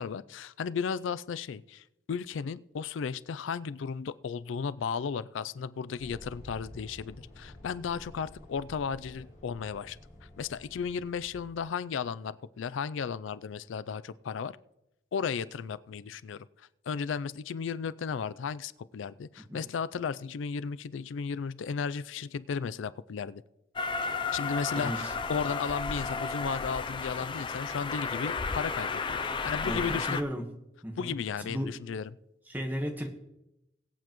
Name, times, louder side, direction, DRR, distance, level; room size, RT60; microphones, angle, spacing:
voice 1, 0.0-10.0 10.4-14.6 15.1-23.4 24.3-30.2 31.0-32.1, left 6 dB, 85° left, 17 dB, 0.4 m, -35 dB
sound 1, 6.0-11.7, left 1 dB, 40° left, 5.2 m, -50 dB
Train, 23.8-30.2, left 4 dB, 25° left, 0.4 m, -33 dB
voice 2, 29.6-30.4 30.8-31.7 32.5-33.1, equal, 10° right, 3 dB, 1.2 m, -35 dB
22.0 x 8.2 x 3.0 m, 0.88 s
head